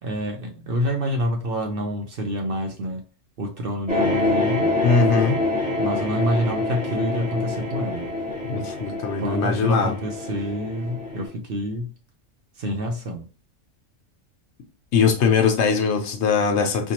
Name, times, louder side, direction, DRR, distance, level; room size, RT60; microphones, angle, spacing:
voice 1, 0.0-3.0 3.4-4.7 5.8-8.1 9.2-11.9 12.6-13.2, equal, 55° right, 0.8 m, -27 dB
sound 1, 3.9-11.3, left 2 dB, 5° right, 1.0 m, -26 dB
voice 2, 4.8-5.4 8.5-9.9 14.9-16.9, left 5 dB, 70° left, 0.9 m, -21 dB
4.4 x 2.2 x 2.8 m
omnidirectional pair, 1.3 m